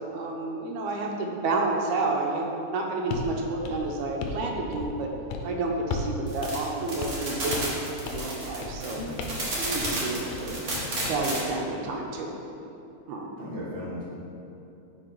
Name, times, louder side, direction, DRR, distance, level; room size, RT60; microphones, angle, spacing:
voice 1, 0.1-5.1 5.4-7.7 8.0-9.0 9.5-10.5 11.0-12.3 13.1-13.3, right 2 dB, 90° right, 0 dB, 2.1 m, -30 dB
sound 1, 3.1-3.3 3.6-4.4 4.7-5.0 5.3-5.5 5.9-6.2 6.4-6.5 7.0-7.3 7.5-7.8 8.1-8.3 8.6-8.8 9.2-9.5 9.8-10.0 10.3-11.2, left 4 dB, 80° left, 1.9 m, -35 dB
sound 2, 6.3-11.4, right 1 dB, 50° right, 1.0 m, -32 dB
voice 2, 10.4-10.9 13.4-14.1, left 1 dB, 75° right, -7 dB, 0.6 m, -37 dB
5.4 x 5.0 x 4.4 m, 2.8 s
omnidirectional pair, 3.5 m